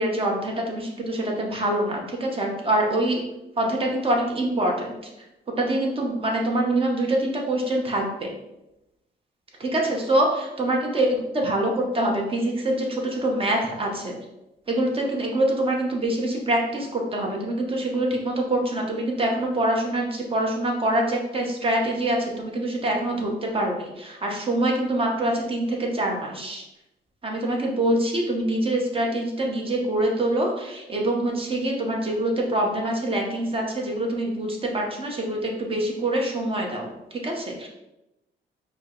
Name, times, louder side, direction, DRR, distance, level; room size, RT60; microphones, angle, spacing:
voice 1, 0.0-3.2 3.6-5.0 5.6-8.3 9.6-11.1 11.3-14.1 14.7-26.6 27.2-37.7, right 1 dB, 25° right, 0 dB, 1.0 m, -25 dB
4.9 x 2.1 x 3.9 m, 0.92 s
cardioid pair, 90°, 20 cm